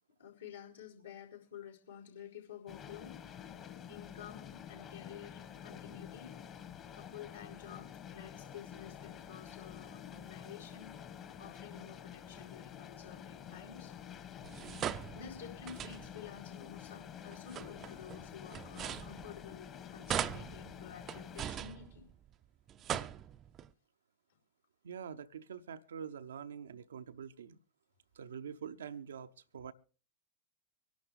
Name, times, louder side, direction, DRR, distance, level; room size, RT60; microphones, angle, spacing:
voice 1, 0.2-3.2 3.9-6.3 7.0-10.9 11.4-13.9 15.1-22.1, left 8 dB, 75° left, 4.6 m, -51 dB
sound 1, 2.7-21.5, left 9 dB, 30° left, 1.5 m, -49 dB
sound 2, 14.4-16.3 17.3-19.7 20.1-22.3 22.7-23.7, right 10 dB, 30° right, 0.6 m, -41 dB
voice 2, 24.8-27.6 28.1-29.7, right 7 dB, 65° right, 0.7 m, -45 dB
24.5 x 11.5 x 3.3 m
figure-of-eight pair, 90°, 0 cm